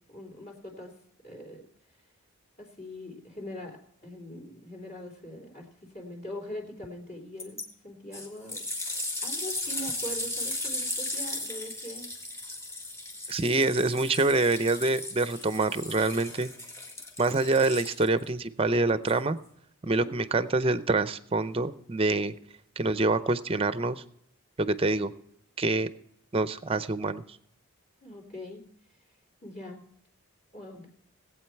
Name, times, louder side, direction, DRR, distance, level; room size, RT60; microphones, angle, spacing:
voice 1, 0.1-0.9 1.2-1.6 2.6-5.7 5.9-8.6 9.2-12.1 19.8-20.1 28.0-28.6 29.4-29.8 30.5-30.9, equal, 45° left, 0 dB, 3.2 m, -42 dB
sound 1, 7.4-7.6 8.1-18.3 19.1-19.2, left 2 dB, 10° left, 1.8 m, -36 dB
voice 2, 13.3-16.5 17.2-19.4 19.8-22.3 22.8-24.0 24.6-25.1 25.6-25.9 26.3-27.2, right 3 dB, 25° right, 14 dB, 0.5 m, -26 dB
18.5 x 8.5 x 4.6 m, 0.73 s
head